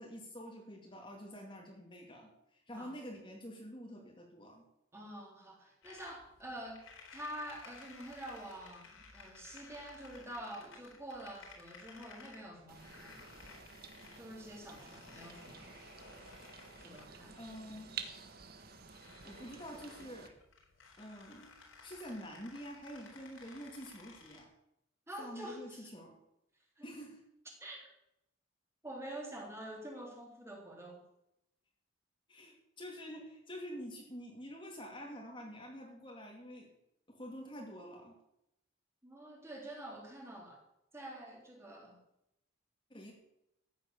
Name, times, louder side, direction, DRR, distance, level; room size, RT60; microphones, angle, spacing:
voice 1, 0.0-4.6 17.3-18.0 19.2-20.3 21.0-21.5 21.8-24.5 25.2-26.2 26.8-27.2 32.3-36.7 37.1-38.1 42.9-43.1, equal, 25° left, 0 dB, 2.4 m, -47 dB
voice 2, 4.9-6.8 7.1-13.2 14.2-15.7 16.8-17.3 25.1-25.9 26.8-26.9 27.6-27.9 28.8-31.0 39.0-40.6 40.9-42.0, right 1 dB, 15° right, -1 dB, 3.5 m, -47 dB
sound 1, 5.8-24.4, left 4 dB, 85° left, 4.3 m, -57 dB
sound 2, 12.7-20.3, right 6 dB, 50° right, 1.5 m, -51 dB
14.5 x 9.7 x 6.8 m, 0.84 s
head